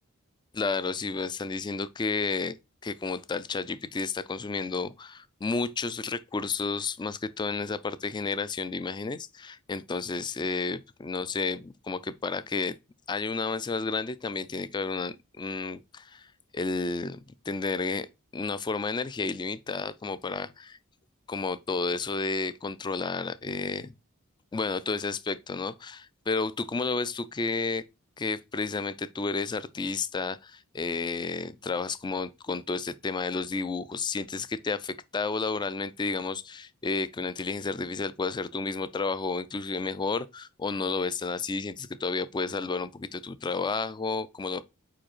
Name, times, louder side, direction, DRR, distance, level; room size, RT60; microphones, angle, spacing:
voice 1, 0.6-2.6 2.8-12.8 13.1-16.3 16.5-17.2 17.5-18.1 18.3-20.8 21.3-23.9 24.5-27.8 28.2-44.6, left 4 dB, 20° left, 0.3 m, -31 dB
5.0 x 4.8 x 4.3 m
head